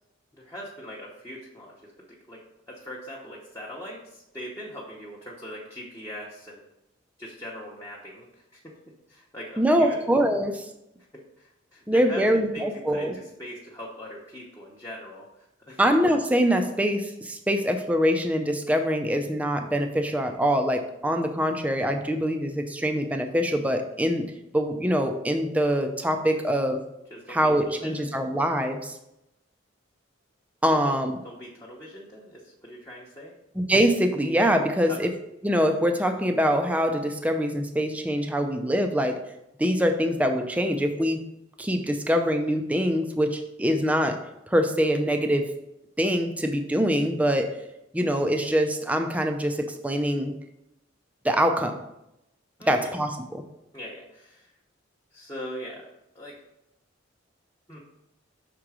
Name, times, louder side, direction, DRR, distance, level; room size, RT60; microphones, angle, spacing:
voice 1, 0.3-1.9 2.3-2.4 2.7-6.7 7.2-8.3 8.5-8.8 9.1-10.0 11.4-12.2 12.5-15.8 27.1-28.1 30.8-31.0 31.2-33.3 34.9-35.1 52.6-52.7 53.7-54.5 55.1-55.9 56.1-56.4 57.7-57.8, equal, 15° left, -5 dB, 0.8 m, -41 dB
voice 2, 9.6-10.7 11.9-13.1 15.8-24.3 24.5-26.8 27.3-29.0 30.6-31.2 33.6-35.1 35.4-39.2 39.6-41.2 41.6-45.5 46.0-47.5 47.9-50.3 51.2-51.8 52.7-53.4, equal, 5° right, 5 dB, 0.4 m, -24 dB
6.0 x 3.8 x 4.8 m, 0.86 s
head